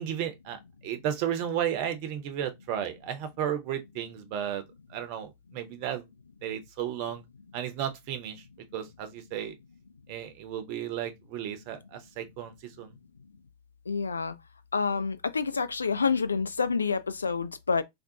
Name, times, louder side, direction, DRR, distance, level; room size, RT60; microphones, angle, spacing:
voice 1, 0.0-4.6 4.9-6.1 6.4-7.2 7.5-8.4 8.7-9.5 10.1-13.0, right 10 dB, 45° right, 0.6 m, -33 dB
voice 2, 13.9-14.4 14.7-17.8, left 5 dB, 75° left, 0.3 m, -28 dB
3.6 x 2.3 x 2.7 m
figure-of-eight pair, 90°, 0 cm